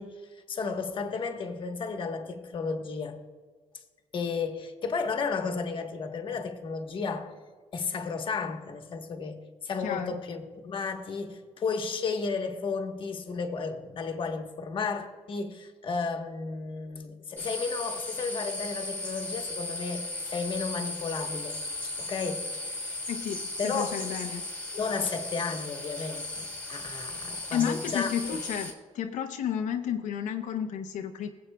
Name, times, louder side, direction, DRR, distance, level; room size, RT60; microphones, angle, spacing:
voice 1, 0.0-3.2 3.7-3.8 4.1-7.3 7.7-22.7 23.6-23.9 24.7-28.4, left 4 dB, 45° left, 1.1 m, -33 dB
voice 2, 9.8-10.2 23.1-24.4 27.5-31.3, left 8 dB, 90° left, 0.6 m, -32 dB
sound 1, 17.4-28.7, left 2 dB, 15° left, 1.4 m, -36 dB
21.5 x 7.9 x 2.2 m
cardioid pair, 140°, 12 cm